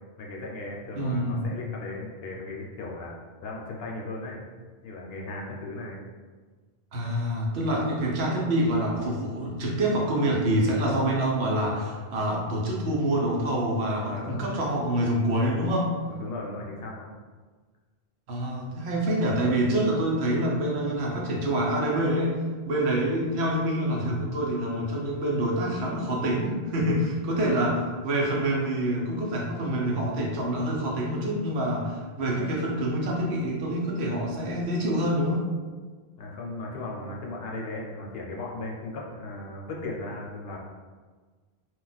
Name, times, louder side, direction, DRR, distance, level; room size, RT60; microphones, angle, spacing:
voice 1, 0.2-3.1 3.4-4.4 4.8-6.0 7.6-7.9 14.0-14.4 16.1-17.1 36.2-40.6, left 2 dB, 70° left, -2 dB, 0.8 m, -37 dB
voice 2, 0.9-1.4 6.9-15.9 18.3-22.4 22.7-35.4, right 1 dB, 80° right, -2 dB, 1.0 m, -26 dB
2.4 x 2.2 x 3.9 m, 1.4 s
omnidirectional pair, 1.1 m